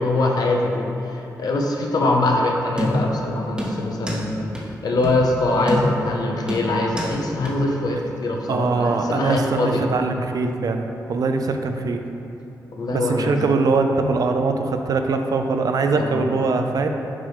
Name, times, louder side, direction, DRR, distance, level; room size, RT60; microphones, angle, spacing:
voice 1, 0.0-4.5 4.8-9.8 12.7-13.3 15.9-16.3, left 2 dB, 65° left, 0 dB, 0.8 m, -23 dB
sound 1, 2.8-3.2 3.6-4.3 4.6-4.7 5.0-5.2 5.7-6.1 6.5-7.2 7.5-7.6, equal, 15° right, 1.1 m, -26 dB
voice 2, 8.5-12.0 12.9-16.9, right 3 dB, 60° right, 5 dB, 0.5 m, -22 dB
7.5 x 4.7 x 3.2 m, 2.9 s
cardioid pair, 65°, 7 cm